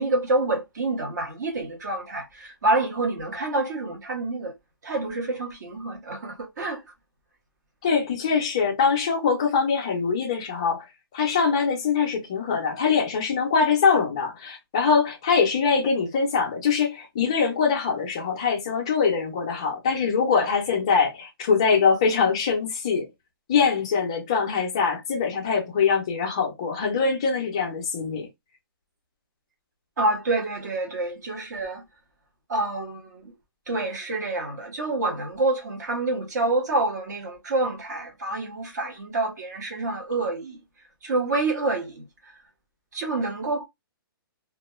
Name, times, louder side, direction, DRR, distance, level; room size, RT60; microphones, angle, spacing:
voice 1, 0.0-4.5 4.8-6.8 30.0-31.8 32.5-33.3 33.7-40.6 41.0-42.0 42.9-43.6, right 2 dB, 45° right, 0.8 m, -27 dB
voice 2, 7.8-10.9 11.1-23.1 23.5-28.3, left 5 dB, 15° left, 0.3 m, -23 dB
2.3 x 2.1 x 2.9 m
hypercardioid pair, 180°, 13 cm